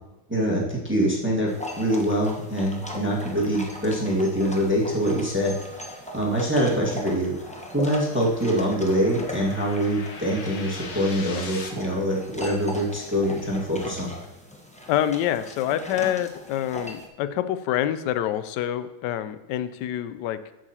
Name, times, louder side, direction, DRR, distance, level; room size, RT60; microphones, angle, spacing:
voice 1, 0.3-5.6 6.1-14.1, equal, 5° right, -3 dB, 1.3 m, -24 dB
sound 1, 1.5-17.1, left 1 dB, 10° left, 0.4 m, -39 dB
sound 2, 5.3-11.7, left 4 dB, 60° left, 1.7 m, -43 dB
voice 2, 14.9-20.4, left 11 dB, 75° left, 12 dB, 1.0 m, -26 dB
11.5 x 7.8 x 2.9 m, 1.1 s
omnidirectional pair, 2.3 m